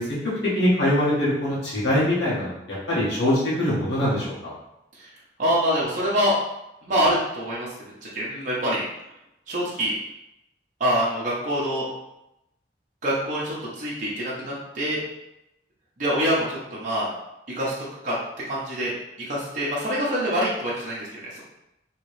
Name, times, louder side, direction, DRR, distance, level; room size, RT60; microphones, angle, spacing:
voice 1, 0.0-4.5, left 1 dB, 70° left, -8 dB, 1.3 m, -23 dB
voice 2, 5.4-6.4 6.8-7.7 8.1-8.8 9.5-9.9 10.8-11.9 13.0-15.0 16.0-17.1 17.5-17.7 18.0-18.2 18.4-18.9 19.3-21.4, equal, 45° right, -7 dB, 0.9 m, -25 dB
3.2 x 2.9 x 3.2 m, 0.86 s
head